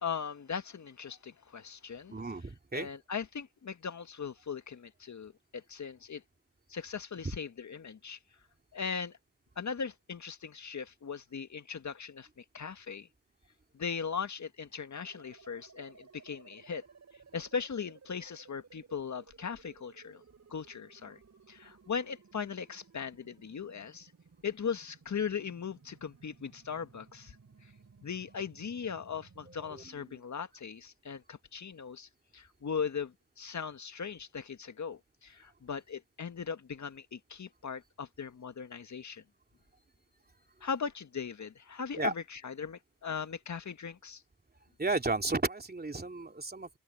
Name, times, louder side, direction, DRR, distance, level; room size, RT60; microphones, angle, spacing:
voice 1, 0.0-2.2 2.7-6.2 6.7-8.2 8.7-9.2 9.6-13.1 13.7-16.8 17.3-20.2 20.5-21.2 21.5-24.1 24.4-27.4 28.0-39.2 40.6-44.2, left 6 dB, 50° left, 1.9 m, -39 dB
voice 2, 2.1-2.9 29.5-29.8 42.0-42.1 44.8-46.8, right 3 dB, 25° right, 2.9 m, -33 dB
sound 1, 15.0-29.9, right 5 dB, 50° right, 5.7 m, -59 dB
open air
supercardioid pair, 45°, 36 cm